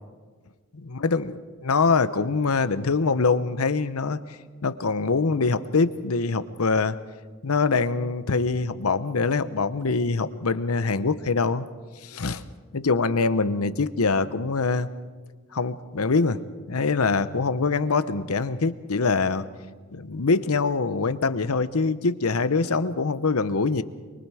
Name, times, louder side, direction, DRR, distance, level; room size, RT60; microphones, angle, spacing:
voice 1, 0.7-4.2 4.6-7.0 7.4-11.7 12.0-12.4 12.7-14.9 15.5-16.4 16.7-19.4 19.9-23.8, left 4 dB, 80° left, 13 dB, 0.8 m, -24 dB
24.0 x 23.0 x 4.9 m, 1.5 s
head